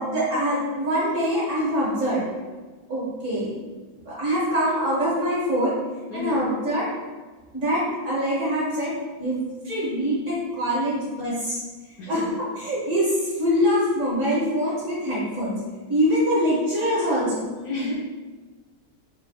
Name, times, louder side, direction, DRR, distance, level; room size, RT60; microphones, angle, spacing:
voice 1, 0.0-2.3 2.9-3.5 4.0-5.7 6.1-6.9 7.5-8.9 9.2-11.6 12.1-15.6 15.9-17.4, equal, 50° right, -8 dB, 1.0 m, -24 dB
voice 2, 6.1-6.4 12.0-12.3 17.6-17.9, left 2 dB, 70° left, -5 dB, 1.0 m, -30 dB
4.5 x 2.3 x 3.3 m, 1.3 s
omnidirectional pair, 2.2 m